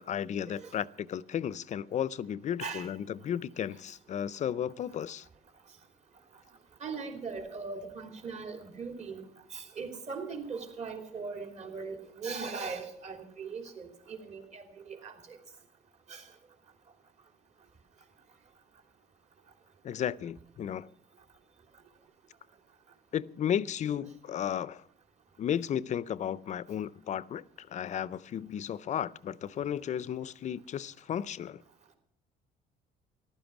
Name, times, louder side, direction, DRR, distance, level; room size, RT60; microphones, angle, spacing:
voice 1, 0.1-5.3 19.8-20.9 23.1-24.8 25.4-31.6, left 9 dB, 45° left, 0.5 m, -34 dB
voice 2, 6.8-9.2 9.5-15.4 16.1-16.3, right 4 dB, 40° right, 3.3 m, -40 dB
14.5 x 12.0 x 6.0 m
cardioid pair, 110°, 17 cm